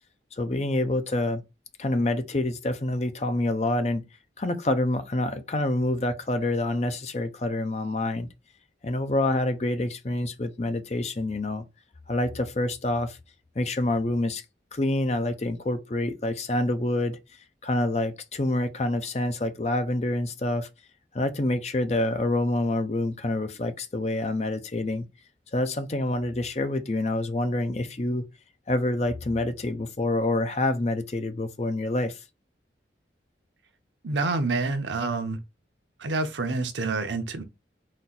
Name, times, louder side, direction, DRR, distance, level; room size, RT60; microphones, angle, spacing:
voice 1, 0.3-1.4 1.8-4.0 4.4-8.3 8.8-11.6 12.1-13.2 13.6-14.4 14.7-17.2 17.6-20.7 21.1-25.0 25.5-28.2 28.7-32.2, left 2 dB, 35° left, 0.5 m, -27 dB
voice 2, 34.0-35.4 36.0-37.4, right 3 dB, 85° right, 0.8 m, -27 dB
4.2 x 2.5 x 4.0 m
head